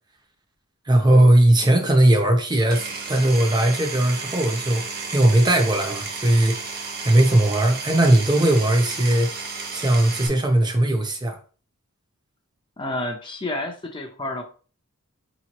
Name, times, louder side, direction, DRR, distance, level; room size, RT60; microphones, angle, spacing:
voice 1, 0.9-4.8 5.1-6.6 7.0-9.3 9.7-11.4, right 1 dB, 20° right, 0.6 m, -18 dB
Power tool, 2.7-10.3, right 4 dB, 45° right, 0.9 m, -33 dB
voice 2, 12.8-14.4, left 2 dB, 20° left, 0.5 m, -30 dB
5.1 x 2.9 x 2.9 m
head